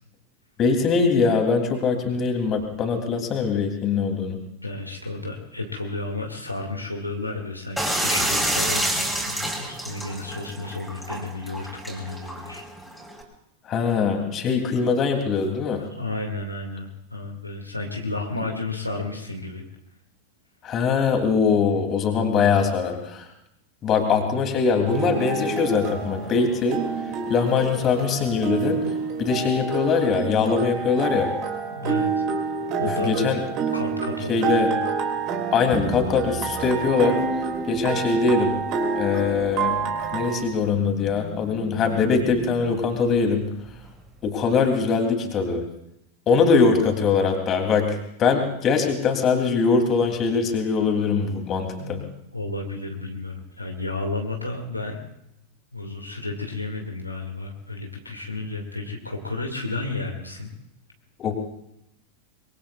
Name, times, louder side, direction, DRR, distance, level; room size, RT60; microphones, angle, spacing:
voice 1, 0.6-4.4 13.7-15.8 20.6-23.3 23.8-26.8 27.3-28.8 29.2-31.3 32.8-33.4 34.3-34.7 35.5-37.2 37.7-38.6 39.0-39.8 40.1-43.5 44.2-45.6 46.3-52.0 61.2-61.3, left 5 dB, 30° left, 4 dB, 2.8 m, -22 dB
voice 2, 4.6-12.6 16.0-19.6 31.7-32.2 32.8-33.1 33.7-34.7 51.8-55.0 55.7-60.5, left 2 dB, 85° left, 1 dB, 2.0 m, -32 dB
sound 1, 7.8-13.2, right 1 dB, ahead, 3.9 m, -28 dB
sound 2, 24.9-40.4, right 5 dB, 40° right, 2.4 m, -28 dB
sound 3, 35.7-44.5, right 3 dB, 15° right, 2.0 m, -37 dB
24.0 x 22.5 x 2.4 m, 0.80 s
figure-of-eight pair, 90°, 0 cm